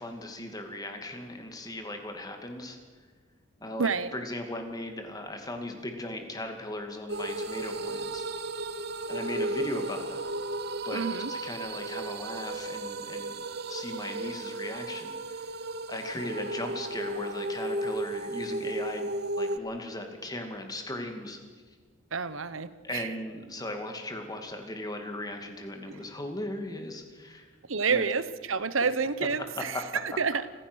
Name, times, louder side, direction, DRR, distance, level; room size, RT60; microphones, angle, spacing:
voice 1, 0.0-2.8 3.6-8.2 9.1-10.2 10.8-13.4 13.7-15.5 15.9-19.1 19.4-21.4 22.8-27.5 27.9-28.0 29.6-29.8 30.1-30.2, left 1 dB, 20° left, 4 dB, 2.5 m, -37 dB
voice 2, 3.8-4.1 10.9-11.3 22.1-23.1 25.9-26.0 27.7-30.5, right 5 dB, 80° right, 14 dB, 1.0 m, -29 dB
sound 1, 7.1-19.6, right 2 dB, 50° right, 0.9 m, -34 dB
27.5 x 15.5 x 6.4 m, 1.5 s
head